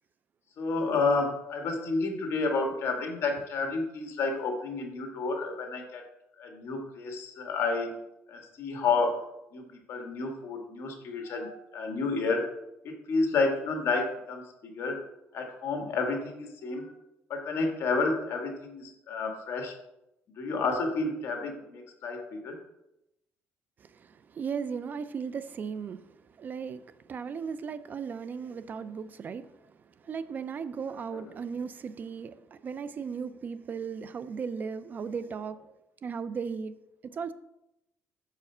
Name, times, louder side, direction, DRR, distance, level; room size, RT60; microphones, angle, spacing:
voice 1, 0.6-6.0 6.4-8.0 8.3-9.3 9.5-12.5 12.8-15.0 15.3-16.9 17.3-19.8 20.4-22.6 31.1-31.3, left 3 dB, 60° left, 1.6 m, -30 dB
voice 2, 24.0-26.0 26.4-29.5 30.1-35.6 36.0-36.7 37.0-37.3, right 6 dB, 40° right, 0.3 m, -36 dB
6.8 x 4.8 x 5.5 m
cardioid pair, 130°, 5 cm